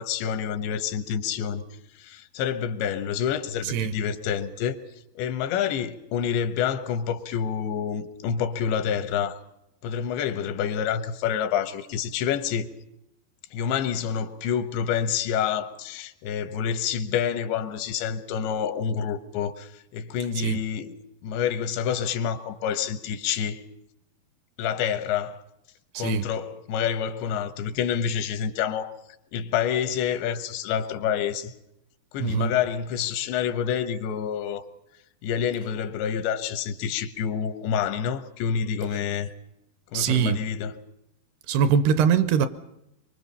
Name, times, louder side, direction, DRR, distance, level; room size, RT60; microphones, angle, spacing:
voice 1, 0.0-1.6 1.9-4.8 5.2-9.4 9.8-12.7 13.5-20.9 21.2-23.6 24.6-25.4 26.0-28.9 29.3-31.5 32.1-34.7 35.2-39.3 39.9-40.7, left 8 dB, 85° left, 3.4 m, -28 dB
voice 2, 3.6-4.0 20.4-20.6 25.9-26.3 32.2-32.6 39.9-40.4 41.5-42.5, right 7 dB, 75° right, 2.7 m, -23 dB
24.5 x 24.0 x 5.5 m
omnidirectional pair, 5.0 m